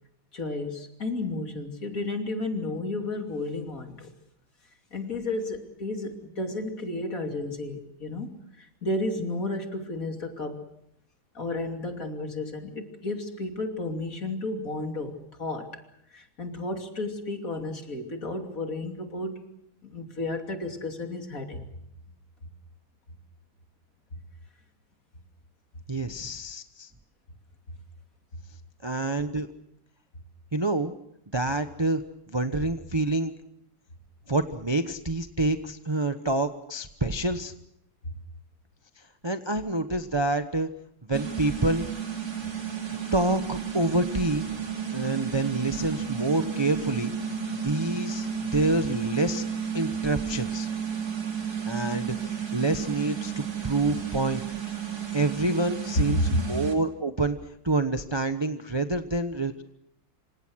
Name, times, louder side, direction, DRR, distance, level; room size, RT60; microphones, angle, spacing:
voice 1, 0.3-4.1 4.9-10.6 11.3-15.8 16.1-19.4 19.8-21.7 56.1-56.4, left 2 dB, 40° left, 4 dB, 3.3 m, -32 dB
voice 2, 25.9-26.9 28.8-29.5 30.5-30.9 31.3-32.0 32.3-33.3 34.3-37.5 39.2-40.7 41.1-41.9 43.1-44.5 44.9-47.1 47.6-48.3 48.5-49.4 49.7-50.7 51.7-54.4 55.1-57.4 57.6-59.6, right 2 dB, 20° right, 8 dB, 0.6 m, -27 dB
sound 1, 41.1-56.8, right 7 dB, 50° right, 3.6 m, -32 dB
27.5 x 26.0 x 6.4 m, 0.75 s
omnidirectional pair, 2.2 m